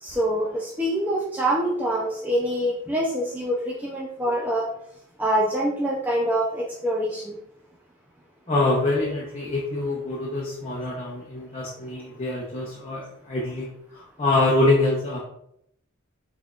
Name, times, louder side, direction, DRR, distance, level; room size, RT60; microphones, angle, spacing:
voice 1, 0.0-4.7 5.2-7.4, right 1 dB, 10° right, -4 dB, 0.5 m, -25 dB
voice 2, 8.5-15.2, left 2 dB, 30° left, -5 dB, 0.8 m, -25 dB
5.8 x 3.6 x 2.4 m, 0.75 s
head